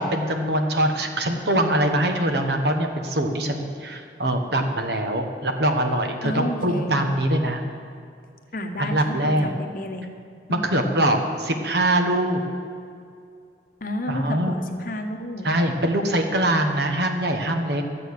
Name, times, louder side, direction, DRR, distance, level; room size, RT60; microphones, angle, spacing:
voice 1, 0.0-7.6 8.8-9.5 10.5-12.4 14.1-14.5 15.4-17.8, right 1 dB, 70° right, 5 dB, 1.2 m, -23 dB
voice 2, 6.2-7.0 8.5-10.1 10.5-10.7 13.8-15.5, left 1 dB, 50° left, 5 dB, 1.0 m, -31 dB
13.0 x 7.7 x 6.6 m, 2.4 s
head